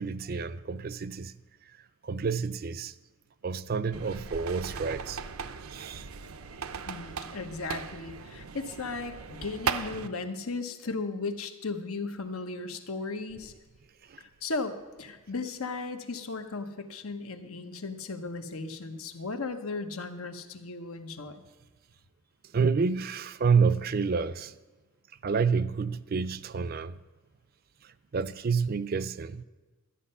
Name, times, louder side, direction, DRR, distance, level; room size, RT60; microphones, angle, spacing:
voice 1, 0.0-1.3 2.0-2.9 3.4-5.2 5.7-6.1 14.1-14.2 22.5-24.6 25.2-27.0 27.8-29.4, right 5 dB, 45° right, 0.4 m, -29 dB
sound 1, 3.9-10.1, right 6 dB, 90° right, 0.6 m, -38 dB
voice 2, 6.9-13.5 14.2-21.4, left 3 dB, 90° left, 1.1 m, -36 dB
13.0 x 8.7 x 5.6 m
head